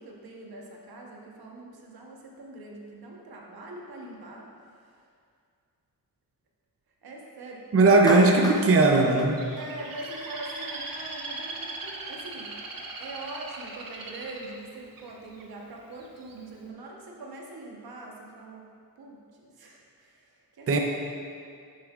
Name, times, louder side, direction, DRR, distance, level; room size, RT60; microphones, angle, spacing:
voice 1, 0.0-4.5 7.0-7.9 9.5-12.6 13.0-18.7 19.0-20.8, right 2 dB, 90° right, -1 dB, 1.1 m, -43 dB
voice 2, 7.7-9.5 20.7-20.8, right 3 dB, 40° right, 2 dB, 0.6 m, -19 dB
Clapping, 8.1-10.4, left 1 dB, 10° left, 0.5 m, -36 dB
Bird, 9.4-15.4 16.0-16.4, right 3 dB, 65° right, 0.8 m, -39 dB
9.4 x 7.2 x 2.4 m, 2.3 s
wide cardioid pair, 125°, 37 cm